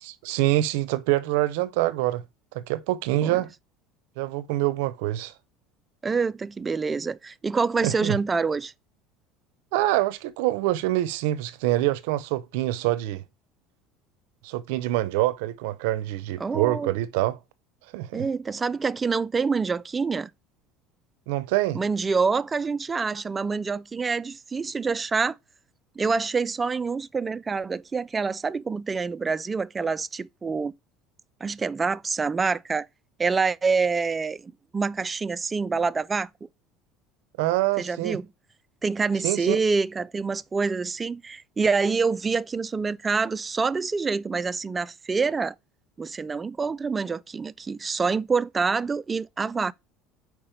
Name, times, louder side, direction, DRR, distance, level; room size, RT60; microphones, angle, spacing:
voice 1, 0.0-2.2 2.5-3.5 4.2-5.3 7.8-8.2 9.7-13.2 14.4-17.4 17.9-18.3 21.3-21.8 37.4-38.2 39.2-39.6, right 16 dB, 80° right, 0.6 m, -25 dB
voice 2, 6.0-8.7 16.4-16.9 18.1-20.3 21.7-25.4 26.0-30.7 31.4-32.9 33.2-36.3 37.8-38.3 38.8-45.5 46.0-49.7, right 4 dB, 20° right, 0.3 m, -26 dB
5.2 x 4.7 x 4.4 m
cardioid pair, 130°, 0 cm